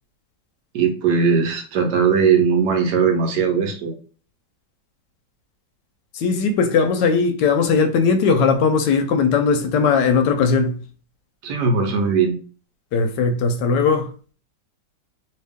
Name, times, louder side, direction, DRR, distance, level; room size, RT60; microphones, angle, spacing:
voice 1, 0.7-4.0 11.4-12.4, right 6 dB, 70° right, 1.2 m, -19 dB
voice 2, 6.1-10.8 12.9-14.1, left 5 dB, 75° left, 1.1 m, -18 dB
2.9 x 2.8 x 3.4 m
omnidirectional pair, 2.0 m